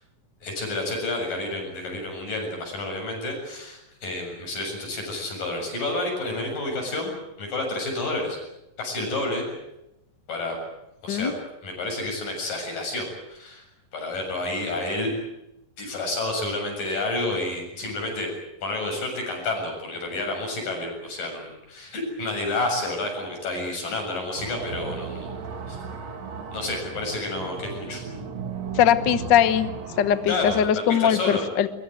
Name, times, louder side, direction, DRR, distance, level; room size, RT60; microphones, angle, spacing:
voice 1, 0.4-7.1 7.4-8.4 8.8-9.5 10.3-10.6 11.0-11.3 11.6-13.6 13.9-15.1 15.8-18.3 18.6-25.3 25.7-25.8 26.5-28.0 30.3-31.4, left 2 dB, 85° left, 2 dB, 9.1 m, -30 dB
sound 1, 24.4-30.7, right 5 dB, 55° right, 3.4 m, -36 dB
voice 2, 28.7-29.7 30.0-31.7, left 9 dB, 60° left, 12 dB, 1.1 m, -20 dB
23.0 x 22.5 x 9.3 m, 0.89 s
omnidirectional pair, 3.8 m